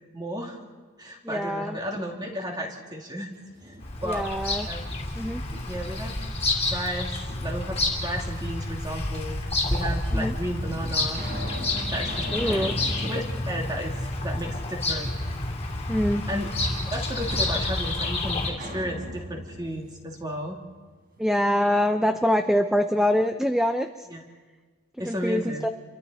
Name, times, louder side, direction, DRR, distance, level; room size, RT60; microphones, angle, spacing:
voice 1, 0.1-0.6 1.0-3.3 3.6-3.7 4.0-4.3 4.7-4.9 5.7-6.1 6.6-7.2 7.4-11.2 11.9-12.7 13.0-15.1 16.3-20.6 24.1-24.2 25.0-25.7, equal, 20° right, 0 dB, 2.6 m, -33 dB
voice 2, 1.2-1.8 4.0-4.7 5.2-5.4 10.1-10.3 12.3-12.8 15.9-16.2 21.2-24.1 25.0-25.7, equal, ahead, 7 dB, 0.5 m, -24 dB
sound 1, 3.3-4.3 4.8-6.0 7.3-8.1 9.0-9.1 9.9-10.0 10.6-14.7 15.1-15.2 18.5-21.3, equal, 40° right, 5.3 m, -40 dB
Bird vocalization bird call bird song, 3.8-18.5, left 2 dB, 25° left, 2.8 m, -29 dB
29.0 x 23.5 x 4.2 m, 1.4 s
head